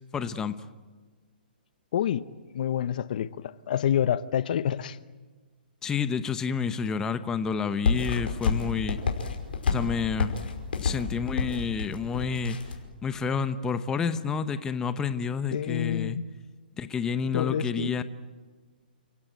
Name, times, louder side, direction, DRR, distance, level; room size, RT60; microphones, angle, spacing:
voice 1, 0.1-0.7 5.8-9.0 9.7-10.3 10.8-12.6 13.0-16.2 16.8-18.0, left 6 dB, 10° left, 0.9 m, -29 dB
voice 2, 1.9-2.2 2.5-5.0 15.5-16.2 17.3-18.0, left 9 dB, 55° left, 0.9 m, -28 dB
sound 1, 7.8-12.8, left 5 dB, 75° left, 5.4 m, -29 dB
30.0 x 17.0 x 9.2 m
hypercardioid pair, 155°, 5 cm